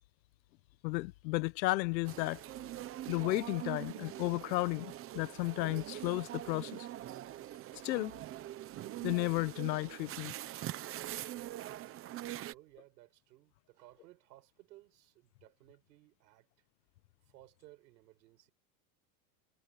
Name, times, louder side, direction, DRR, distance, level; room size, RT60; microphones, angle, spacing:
voice 1, 0.8-2.4 3.1-6.9 7.8-8.1 9.0-10.3, left 21 dB, 85° left, 1.1 m, -33 dB
sound 1, 2.1-12.5, right 14 dB, 25° right, 1.0 m, -43 dB
voice 2, 12.5-16.5 17.2-18.5, right 17 dB, 90° right, 6.0 m, -59 dB
supercardioid pair, 160°, 50 cm